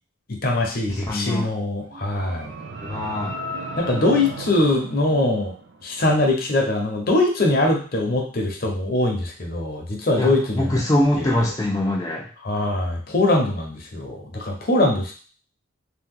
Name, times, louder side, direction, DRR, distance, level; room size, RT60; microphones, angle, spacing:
voice 1, 0.3-2.5 3.8-5.5 5.8-10.8 11.2-11.3 12.4-15.1, left 2 dB, 50° left, 1 dB, 0.7 m, -22 dB
voice 2, 0.9-1.5 2.8-3.4 10.1-12.2, left 1 dB, 20° left, -3 dB, 0.4 m, -23 dB
sound 1, 1.8-6.0, right 1 dB, 75° right, 0.4 m, -35 dB
2.8 x 2.2 x 3.6 m, 0.39 s
head